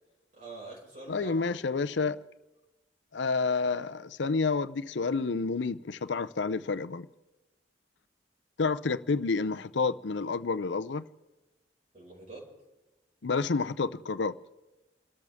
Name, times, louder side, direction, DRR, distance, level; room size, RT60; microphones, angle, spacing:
voice 1, 0.3-2.0 11.9-12.5, right 3 dB, 45° right, 5.9 m, -46 dB
voice 2, 1.1-2.2 3.1-7.1 8.6-11.0 13.2-14.4, left 4 dB, 85° left, 0.6 m, -29 dB
29.5 x 13.5 x 3.6 m
head